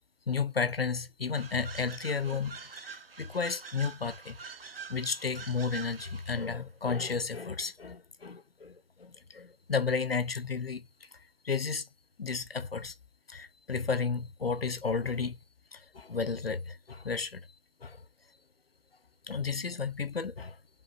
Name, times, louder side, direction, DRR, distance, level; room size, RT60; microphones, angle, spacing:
voice 1, 0.3-2.6 2.9-4.4 4.9-10.9 11.4-11.9 12.2-12.9 13.3-15.4 15.7-17.5 17.8-18.0 19.3-20.6, left 5 dB, 75° left, 0.7 m, -33 dB
sound 1, 1.3-6.5, right 5 dB, 75° right, 0.7 m, -46 dB
4.4 x 3.7 x 2.5 m
figure-of-eight pair, 170°, 30 cm